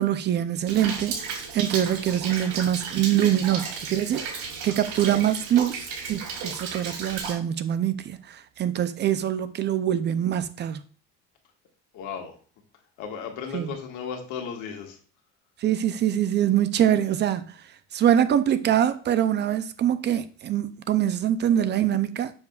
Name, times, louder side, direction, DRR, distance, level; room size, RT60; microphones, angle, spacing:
voice 1, 0.0-10.8 13.5-13.7 15.6-17.6 17.9-22.3, right 10 dB, 35° right, 0.5 m, -24 dB
Rain, 0.7-7.3, right 5 dB, 80° right, 2.3 m, -34 dB
voice 2, 11.9-12.4 13.0-15.0, left 7 dB, 75° left, 1.7 m, -35 dB
7.1 x 6.6 x 2.4 m
cardioid pair, 140°, 30 cm